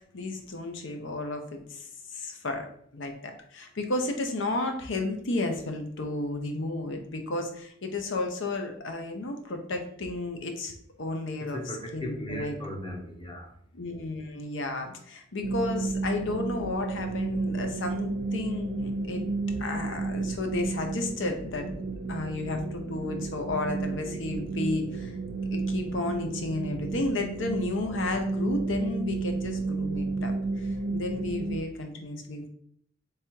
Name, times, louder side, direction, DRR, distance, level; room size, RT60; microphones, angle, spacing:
voice 1, 0.0-2.7 2.9-11.6 11.9-12.6 13.7-19.2 19.6-21.8 22.1-25.1 25.5-32.5, left 2 dB, 70° left, 5 dB, 0.8 m, -32 dB
voice 2, 11.4-13.5, equal, 25° left, 1 dB, 0.9 m, -37 dB
sound 1, 15.4-31.6, right 3 dB, 60° right, 0.6 m, -32 dB
3.5 x 3.3 x 4.4 m, 0.65 s
head